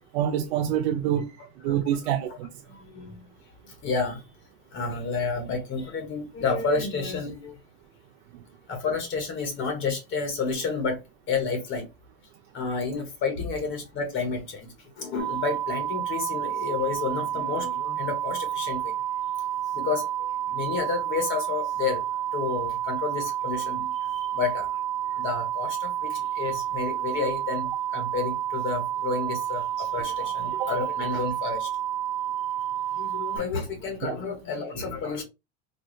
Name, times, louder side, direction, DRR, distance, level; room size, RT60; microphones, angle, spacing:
voice 1, 0.1-1.3 1.6-2.5 8.3-8.4 30.5-30.7 34.0-34.1, right 10 dB, 90° right, 0.6 m, -26 dB
voice 2, 2.7-3.3 3.6-4.2 4.7-7.6 8.7-11.0 11.3-11.9 12.5-18.9 19.7-24.7 25.2-31.7 32.9-35.2, left 4 dB, 40° left, 1.2 m, -30 dB
sound 1, 15.2-33.4, right 11 dB, 75° right, 1.2 m, -30 dB
4.2 x 2.3 x 3.1 m
supercardioid pair, 145°, 32 cm